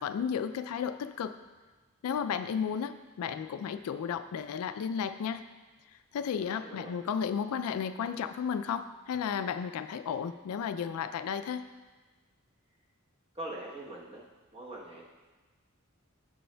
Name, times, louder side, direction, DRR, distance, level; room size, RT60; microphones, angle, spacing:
voice 1, 0.0-1.4 2.0-5.4 6.1-11.6, left 7 dB, 80° left, 10 dB, 0.3 m, -33 dB
voice 2, 6.4-7.0 13.3-14.2 14.5-15.0, right 1 dB, 25° right, -4 dB, 1.0 m, -42 dB
7.7 x 7.0 x 2.2 m, 1.3 s
head